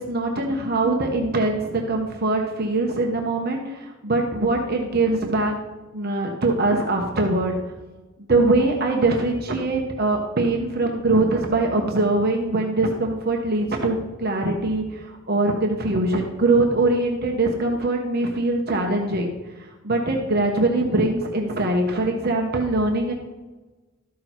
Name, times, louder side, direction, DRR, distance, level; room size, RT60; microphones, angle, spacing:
voice 1, 0.0-5.5 5.9-7.5 8.3-19.4 19.8-23.1, right 2 dB, 45° right, 1 dB, 1.2 m, -22 dB
13.5 x 6.2 x 4.6 m, 1.2 s
head